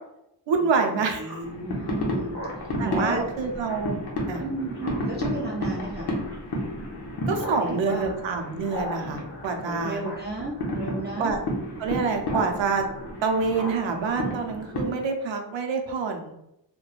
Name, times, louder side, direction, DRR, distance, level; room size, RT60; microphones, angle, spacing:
voice 1, 0.5-1.3 2.8-4.0 4.3-4.4 7.3-10.0 11.2-11.4 11.8-12.9 13.2-16.3, right 4 dB, 85° right, 4 dB, 0.6 m, -26 dB
voice 2, 1.0-3.3 4.4-6.1 7.7-8.1 9.6-11.3, right 2 dB, 25° right, -4 dB, 0.3 m, -33 dB
Speech synthesizer, 1.2-12.5 12.8-15.0, equal, 35° left, 1.2 m, -42 dB
sound 1, 1.4-15.0, left 1 dB, 60° left, 0.7 m, -32 dB
3.0 x 2.1 x 2.3 m, 0.83 s
wide cardioid pair, 135°, 44 cm